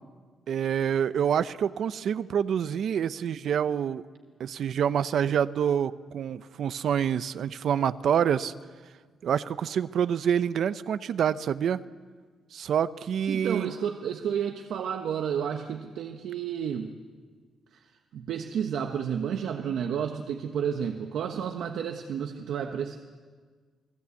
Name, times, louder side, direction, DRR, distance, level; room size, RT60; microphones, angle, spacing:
voice 1, 0.5-4.0 4.4-8.5 9.2-11.8 12.5-13.7, right 8 dB, 60° right, 14 dB, 0.7 m, -27 dB
voice 2, 13.3-16.9 17.7-23.0, right 8 dB, 80° right, 4 dB, 1.2 m, -31 dB
29.0 x 19.5 x 8.4 m, 1.5 s
cardioid pair, 155°, 0 cm